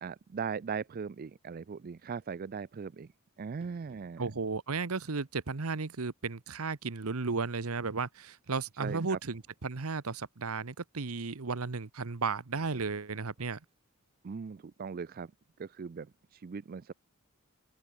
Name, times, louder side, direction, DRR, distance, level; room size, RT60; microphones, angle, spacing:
voice 1, 0.0-3.1 3.4-4.3 8.8-9.2 14.2-15.3 15.6-16.9, right 6 dB, 40° right, 0.4 m, -39 dB
sound 1, 1.7-1.8 2.8-2.9 3.6-4.5 5.1-5.6 6.0-6.1 7.1-7.2 7.3-7.4 8.3-8.4 8.7-8.8 9.0-9.1 9.3-9.8 10.3-10.4 12.5-13.8 14.2-14.4 14.9-15.0, right 1 dB, 25° right, 6.9 m, -62 dB
voice 2, 4.2-13.6, right 4 dB, 80° right, 1.0 m, -34 dB
open air
head